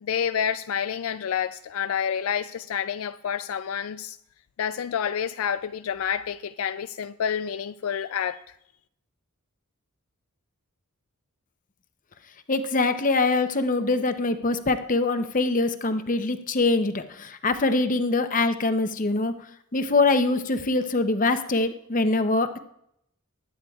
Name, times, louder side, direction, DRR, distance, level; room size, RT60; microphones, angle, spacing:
voice 1, 0.0-4.2 4.6-8.4, left 8 dB, 70° left, 0.4 m, -28 dB
voice 2, 12.5-19.3 19.7-22.6, left 3 dB, 40° left, 0.7 m, -23 dB
20.5 x 9.4 x 2.4 m
head